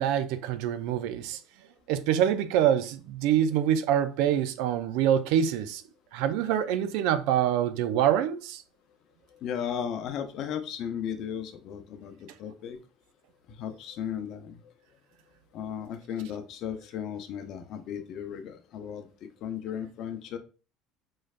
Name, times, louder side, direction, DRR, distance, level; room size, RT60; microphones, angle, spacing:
voice 1, 0.0-1.4 1.9-5.8 6.1-8.6, right 10 dB, 75° right, 0.4 m, -25 dB
voice 2, 9.3-12.8 13.5-14.7 15.5-19.1 19.4-20.4, left 8 dB, 60° left, 0.6 m, -35 dB
3.9 x 3.2 x 2.4 m
supercardioid pair, 100°, 0 cm